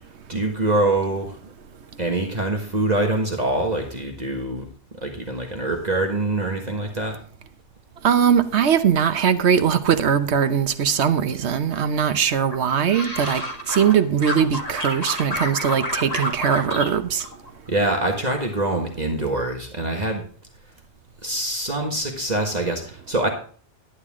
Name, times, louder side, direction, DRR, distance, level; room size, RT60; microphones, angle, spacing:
voice 1, 0.3-1.5 2.0-7.2 17.7-20.2 21.2-23.3, right 2 dB, 35° right, 1.6 m, -24 dB
voice 2, 8.0-13.4 13.7-17.2, right 7 dB, 70° right, 1.1 m, -20 dB
sound 1, 12.5-13.9 14.2-16.9 17.2-18.0 18.3-18.7, equal, 35° left, 2.0 m, -29 dB
11.5 x 9.6 x 3.6 m
omnidirectional pair, 1.2 m